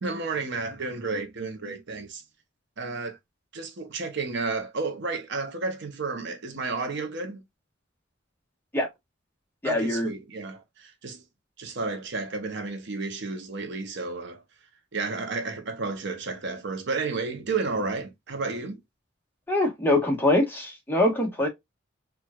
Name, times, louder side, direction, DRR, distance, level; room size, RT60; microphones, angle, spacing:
voice 1, 0.0-2.2 2.8-3.2 3.5-7.4 9.6-11.2 11.6-14.4 14.9-18.8, right 4 dB, 60° right, 0.8 m, -32 dB
voice 2, 9.6-10.1 19.5-21.5, left 1 dB, 10° left, 1.1 m, -23 dB
4.5 x 2.4 x 2.3 m
head